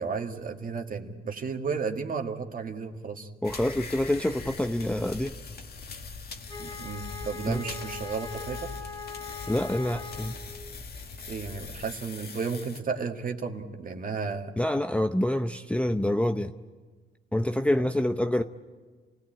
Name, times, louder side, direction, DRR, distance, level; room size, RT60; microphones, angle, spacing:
voice 1, 0.0-3.3 6.6-8.7 11.3-14.5 17.8-17.9, right 5 dB, 45° right, 4 dB, 1.9 m, -33 dB
sound 1, 3.4-12.8, left 4 dB, 50° left, 1.8 m, -41 dB
voice 2, 3.4-5.3 7.5-7.6 9.5-10.3 14.6-16.5 17.3-18.4, left 1 dB, 5° left, 6 dB, 0.7 m, -26 dB
Wind instrument woodwind instrument, 6.5-10.7, left 4 dB, 20° left, 2.1 m, -41 dB
27.5 x 17.5 x 8.8 m, 1.4 s
cardioid pair, 90°, 20 cm